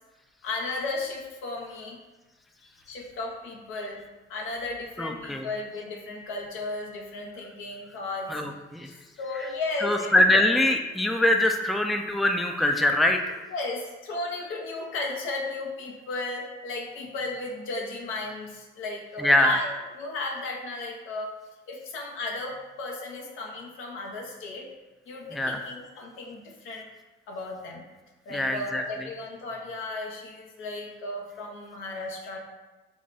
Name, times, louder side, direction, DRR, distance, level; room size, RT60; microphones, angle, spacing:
voice 1, 0.4-2.0 2.9-4.0 4.3-8.3 9.2-10.5 13.5-21.3 21.7-24.7 25.1-26.8 27.3-27.8 28.3-32.4, left 2 dB, 85° left, -1 dB, 0.9 m, -35 dB
voice 2, 5.0-5.5 8.3-8.9 9.8-13.4 19.2-19.6 25.3-25.6 28.3-28.8, left 1 dB, ahead, 4 dB, 0.3 m, -23 dB
4.8 x 2.2 x 4.0 m, 1.1 s
cardioid pair, 90°, 20 cm